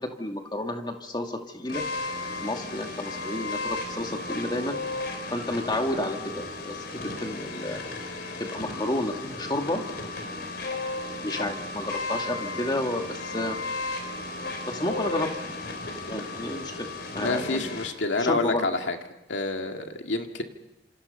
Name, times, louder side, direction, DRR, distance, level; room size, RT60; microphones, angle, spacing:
voice 1, 0.2-1.9 2.4-5.0 5.3-7.8 8.4-9.8 11.2-13.6 14.7-15.3 16.1-16.9 17.1-17.8 18.1-18.7, left 1 dB, 25° left, 3 dB, 2.2 m, -31 dB
sound 1, 1.7-17.9, left 2 dB, 55° left, 4.1 m, -34 dB
voice 2, 17.2-19.0 19.3-20.4, left 3 dB, 75° left, 4 dB, 2.2 m, -28 dB
28.5 x 27.0 x 5.6 m, 0.98 s
head